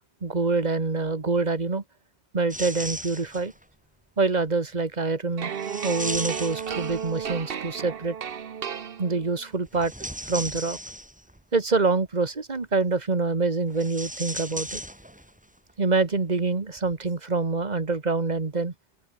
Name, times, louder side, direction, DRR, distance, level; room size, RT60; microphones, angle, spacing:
voice 1, 0.2-1.8 2.3-3.5 4.2-5.5 5.8-8.1 9.0-9.9 10.3-10.8 11.5-14.8 15.8-18.7, right 3 dB, 40° right, 1.7 m, -25 dB
sound 1, 2.5-3.6 5.6-7.4 9.7-11.4 13.7-15.4 15.7-15.8 16.8-16.9, equal, 5° right, 2.7 m, -36 dB
sound 2, 5.4-9.5, right 7 dB, 60° right, 1.1 m, -33 dB
open air
omnidirectional pair, 1.1 m